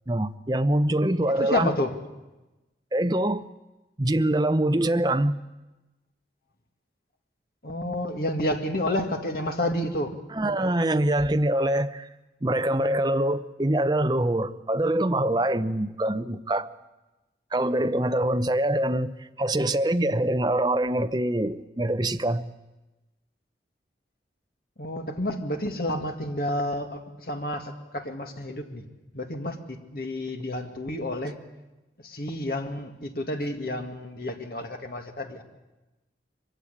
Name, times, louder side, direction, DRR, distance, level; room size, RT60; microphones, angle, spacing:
voice 1, 0.1-1.8 2.9-3.4 4.0-5.3 10.3-12.1 12.4-16.7 17.5-22.5, right 1 dB, 20° right, 9 dB, 0.7 m, -24 dB
voice 2, 1.4-1.9 7.6-10.1 24.8-28.8 29.1-31.4 32.0-35.4, left 1 dB, 55° left, 5 dB, 2.2 m, -30 dB
23.0 x 16.0 x 10.0 m, 1.1 s
head